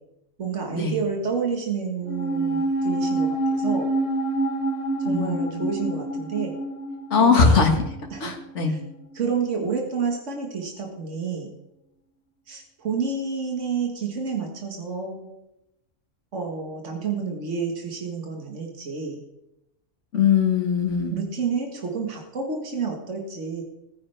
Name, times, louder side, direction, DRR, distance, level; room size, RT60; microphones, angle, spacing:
voice 1, 0.4-3.9 5.0-6.5 7.2-7.6 8.1-8.3 8.7-8.8 9.1-11.5 12.5-15.3 16.3-19.2 21.1-23.6, right 5 dB, 85° right, 1 dB, 1.9 m, -29 dB
sound 1, 2.1-8.6 8.9-9.0, right 2 dB, 60° left, 1.5 m, -27 dB
voice 2, 5.1-5.6 7.1-7.7 8.2-8.8 20.1-21.2, left 5 dB, 80° left, 3 dB, 2.0 m, -20 dB
19.5 x 9.7 x 3.4 m, 0.89 s
omnidirectional pair, 1.2 m